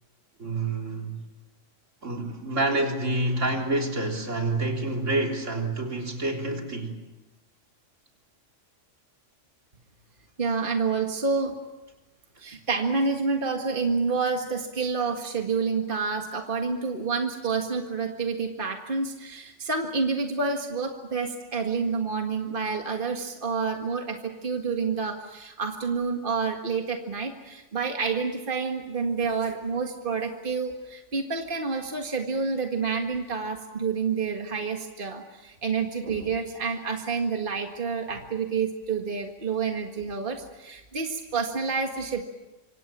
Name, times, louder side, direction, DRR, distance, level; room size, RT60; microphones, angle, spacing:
voice 1, 0.4-1.2 2.0-7.0, right 2 dB, 80° right, 1 dB, 4.1 m, -28 dB
voice 2, 10.4-11.5 12.4-42.2, right 4 dB, 45° right, 3 dB, 2.0 m, -28 dB
26.5 x 25.5 x 7.5 m, 1.0 s
omnidirectional pair, 1.3 m